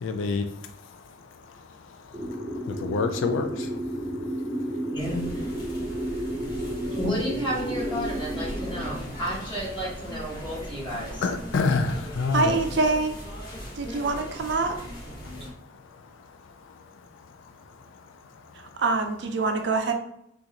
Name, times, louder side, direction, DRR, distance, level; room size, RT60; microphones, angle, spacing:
voice 1, 0.0-0.4 2.7-3.7 11.2-12.6, left 4 dB, 75° left, 6 dB, 0.3 m, -26 dB
sound 1, 2.1-8.9, right 1 dB, 5° left, 1.1 m, -32 dB
voice 2, 4.9-5.2 7.0-11.3, equal, 25° left, -7 dB, 1.5 m, -31 dB
sound 2, 5.0-15.5, equal, 50° left, 1.2 m, -38 dB
voice 3, 12.3-13.1 13.7-14.8 18.8-19.9, right 3 dB, 60° right, 6 dB, 0.4 m, -25 dB
3.9 x 2.4 x 2.8 m, 0.76 s
head